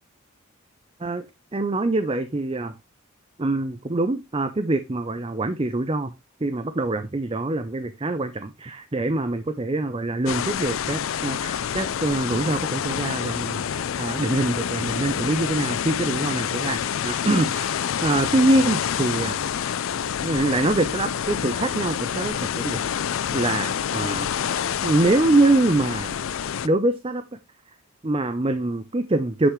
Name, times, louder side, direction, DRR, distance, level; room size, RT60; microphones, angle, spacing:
voice 1, 1.5-2.8 3.4-6.1 6.4-19.7 20.2-22.8 23.3-24.3 24.8-26.1 26.6-27.2 28.0-29.5, right 2 dB, 25° right, 0.6 m, -24 dB
sound 1, 10.3-26.7, left 8 dB, 65° left, 0.4 m, -27 dB
9.8 x 5.8 x 3.1 m
head